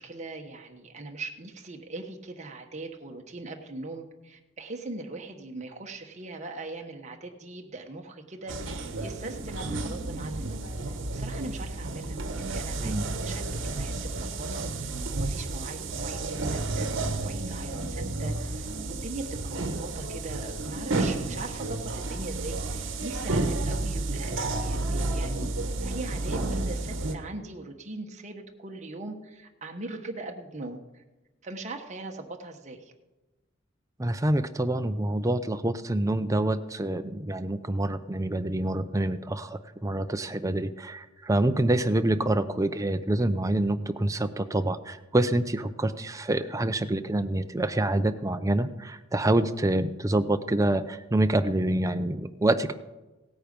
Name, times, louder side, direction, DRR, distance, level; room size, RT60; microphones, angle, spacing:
voice 1, 0.0-25.5 25.8-31.0 31.4-32.9, right 2 dB, 35° right, 3 dB, 1.2 m, -41 dB
sound 1, 8.5-27.1, right 2 dB, 65° right, 1.2 m, -31 dB
voice 2, 34.0-52.7, right 1 dB, 15° right, 9 dB, 0.6 m, -26 dB
17.0 x 9.0 x 5.3 m, 1.1 s
head